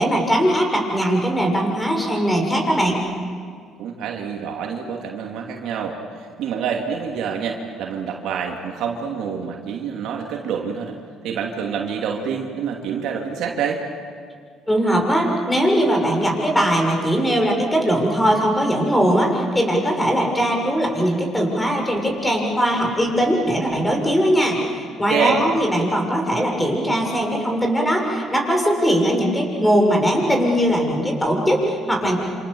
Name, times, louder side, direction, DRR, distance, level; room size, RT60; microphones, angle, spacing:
voice 1, 0.0-3.0 14.7-32.2, equal, 10° left, 2 dB, 6.7 m, -20 dB
voice 2, 3.8-11.0 11.2-13.8 25.1-25.4, right 7 dB, 70° right, 1 dB, 2.9 m, -27 dB
27.5 x 27.0 x 7.3 m, 2.1 s
supercardioid pair, 80°, 0 cm